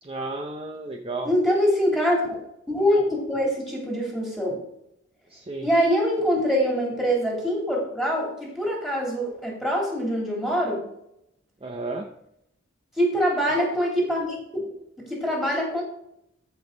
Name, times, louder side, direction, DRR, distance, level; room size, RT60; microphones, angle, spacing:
voice 1, 0.0-1.3 5.3-5.7 11.6-12.1, right 2 dB, 25° right, 3 dB, 0.7 m, -33 dB
voice 2, 1.2-2.4 2.7-4.6 5.6-10.8 13.0-14.7 15.1-15.8, equal, ahead, -2 dB, 2.9 m, -24 dB
14.0 x 5.4 x 3.9 m, 0.78 s
head